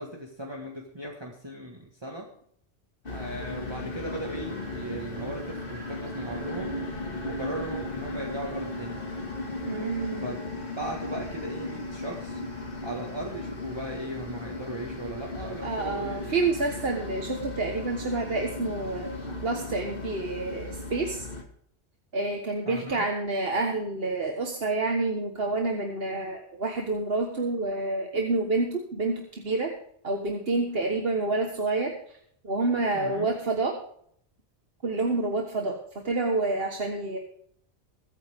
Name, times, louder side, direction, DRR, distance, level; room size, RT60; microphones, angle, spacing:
voice 1, 0.0-2.3 3.1-6.8 7.2-9.0 10.2-10.4 10.7-12.4 12.8-16.4 22.7-23.0 32.9-33.3, right 1 dB, 25° right, -1 dB, 1.7 m, -37 dB
sound 1, 3.0-21.4, left 2 dB, 55° left, 2.3 m, -36 dB
voice 2, 9.6-10.4 15.6-19.1 19.4-21.3 22.1-29.7 30.0-32.2 32.4-33.8 34.8-35.8 36.0-37.2, right 3 dB, 60° right, 2 dB, 1.6 m, -28 dB
22.0 x 9.1 x 3.6 m, 0.64 s
omnidirectional pair, 1.1 m